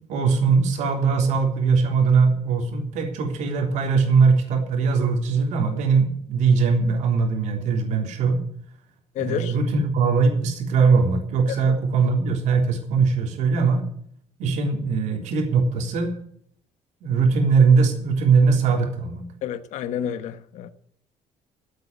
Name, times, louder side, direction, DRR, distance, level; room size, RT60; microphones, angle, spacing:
voice 1, 0.1-8.4 9.2-13.9 14.4-16.1 17.0-19.2, right 5 dB, 80° right, 3.7 m, -20 dB
voice 2, 9.1-9.5 11.5-11.6 19.4-20.7, left 10 dB, 80° left, 1.3 m, -29 dB
15.0 x 8.4 x 9.9 m
cardioid pair, 140°, 12 cm